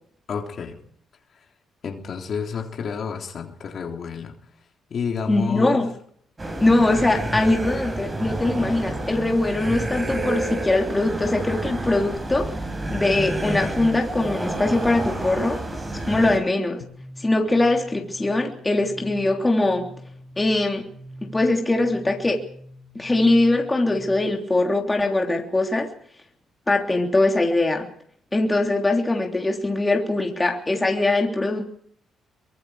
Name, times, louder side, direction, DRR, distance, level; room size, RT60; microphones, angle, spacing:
voice 1, 0.3-0.8 1.8-4.4 4.9-5.8, left 6 dB, 55° left, 2 dB, 3.5 m, -30 dB
voice 2, 5.3-5.9 6.6-12.6 12.9-15.6 16.1-16.8 17.2-19.9 20.4-20.9 21.2-22.4 22.9-25.9 26.7-27.9 28.3-31.7, left 2 dB, 15° left, 2 dB, 3.3 m, -22 dB
sound 1, 6.4-16.4, right 1 dB, 20° right, 5.7 m, -29 dB
sound 2, 16.8-24.4, equal, 85° left, 4.5 m, -44 dB
23.5 x 22.0 x 4.9 m, 0.63 s
cardioid pair, 90°, 0 cm